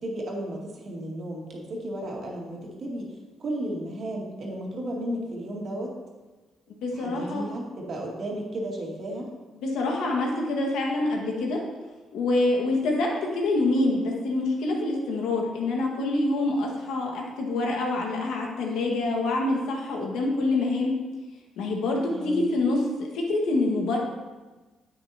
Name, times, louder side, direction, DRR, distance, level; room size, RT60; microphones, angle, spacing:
voice 1, 0.0-3.1 3.4-5.9 6.9-9.3 22.1-22.4, right 1 dB, 55° right, -2 dB, 2.2 m, -33 dB
voice 2, 6.8-7.5 9.6-11.6 12.1-20.9 21.6-24.0, left 2 dB, 90° left, 0 dB, 1.7 m, -26 dB
9.4 x 8.3 x 2.9 m, 1.2 s
cardioid pair, 90°, 0 cm